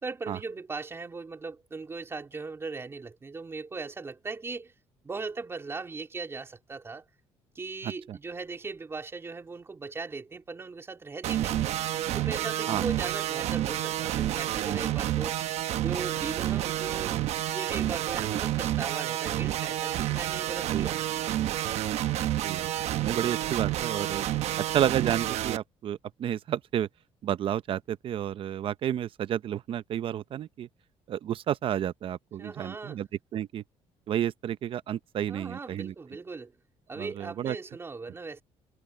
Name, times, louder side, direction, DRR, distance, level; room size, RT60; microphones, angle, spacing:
voice 1, 0.0-4.7 5.0-7.0 7.5-11.7 12.1-15.4 15.8-17.1 17.5-21.0 32.4-33.0 35.3-36.5 36.9-38.4, right 4 dB, 20° right, 3.3 m, -38 dB
voice 2, 7.8-8.2 12.7-12.8 20.7-20.9 22.4-22.7 23.0-24.3 24.7-26.9 27.2-30.7 31.1-33.6 34.1-35.9 37.0-37.6, right 10 dB, 50° right, 0.7 m, -31 dB
sound 1, 11.2-25.6, right 13 dB, 70° right, 1.0 m, -29 dB
cardioid pair, 145°, 12 cm